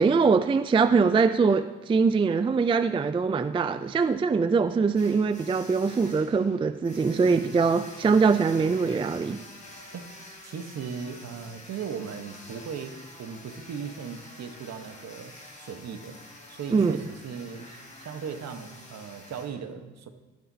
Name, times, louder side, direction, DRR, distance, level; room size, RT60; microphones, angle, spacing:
voice 1, 0.0-9.4 16.7-16.9, right 5 dB, 20° right, 11 dB, 0.3 m, -23 dB
sound 1, 4.9-19.5, left 1 dB, 25° left, 3.4 m, -48 dB
voice 2, 10.4-15.3 15.6-16.2 16.5-20.1, right 6 dB, 60° right, 7 dB, 1.2 m, -38 dB
19.0 x 9.3 x 2.8 m, 1.1 s
cardioid pair, 90°, 30 cm